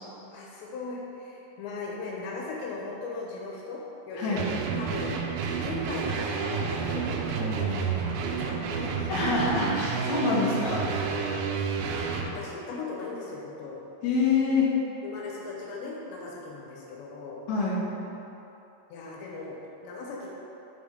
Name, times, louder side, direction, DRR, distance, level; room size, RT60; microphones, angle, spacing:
voice 1, 0.3-3.8 4.1-4.4 4.7-5.2 5.6-9.3 11.2-11.6 11.9-13.9 15.0-17.4 18.9-19.6 19.8-20.3, left 3 dB, 85° left, -3 dB, 3.2 m, -38 dB
sound 1, 4.4-12.3, right 6 dB, 85° right, 2.2 m, -30 dB
voice 2, 9.1-10.9 14.0-14.7 17.5-17.8, left 4 dB, 65° left, -6 dB, 1.9 m, -25 dB
6.0 x 5.6 x 4.9 m, 3.0 s
omnidirectional pair, 5.0 m